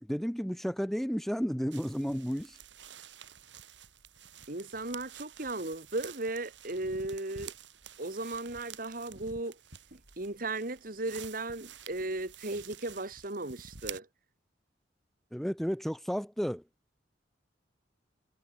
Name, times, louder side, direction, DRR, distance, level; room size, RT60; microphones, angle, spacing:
voice 1, 0.1-2.6 15.3-16.6, equal, ahead, 1.1 m, -32 dB
sound 1, 1.7-14.0, right 8 dB, 75° right, 4.6 m, -49 dB
voice 2, 4.5-7.5 8.0-9.6 9.9-14.1, right 2 dB, 50° right, 2.2 m, -36 dB
head